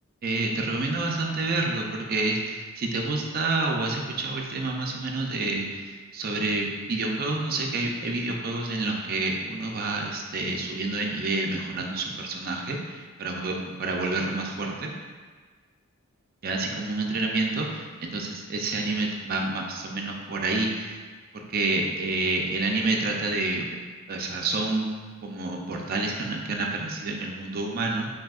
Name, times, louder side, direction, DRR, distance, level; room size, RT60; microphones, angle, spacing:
voice 1, 0.2-14.9 16.4-21.0 21.3-23.6 24.1-24.9 25.2-28.1, right 2 dB, 45° right, 0 dB, 0.5 m, -28 dB
6.0 x 2.7 x 2.4 m, 1.5 s
head